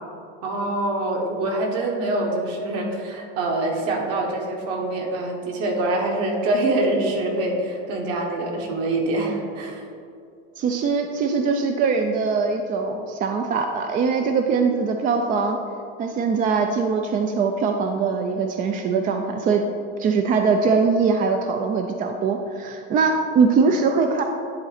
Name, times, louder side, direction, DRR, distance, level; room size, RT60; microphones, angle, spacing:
voice 1, 0.4-9.8, right 2 dB, 55° right, 0 dB, 1.5 m, -25 dB
voice 2, 10.6-15.6 16.0-19.6 20.0-24.2, right 5 dB, 30° right, 4 dB, 0.4 m, -22 dB
10.5 x 3.9 x 4.2 m, 2.4 s
supercardioid pair, 140°, 30 cm